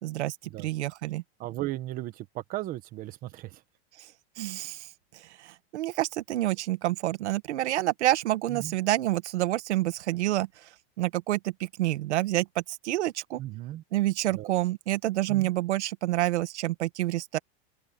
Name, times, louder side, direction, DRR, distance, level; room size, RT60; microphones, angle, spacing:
voice 1, 0.0-1.2 4.4-4.9 5.1-10.5 11.0-13.4 13.9-17.4, right 15 dB, 80° right, 1.8 m, -28 dB
voice 2, 1.4-3.6 8.5-8.7 13.4-13.8 14.3-14.5 15.3-15.5, right 16 dB, 25° right, 1.3 m, -36 dB
supercardioid pair, 170°, 34 cm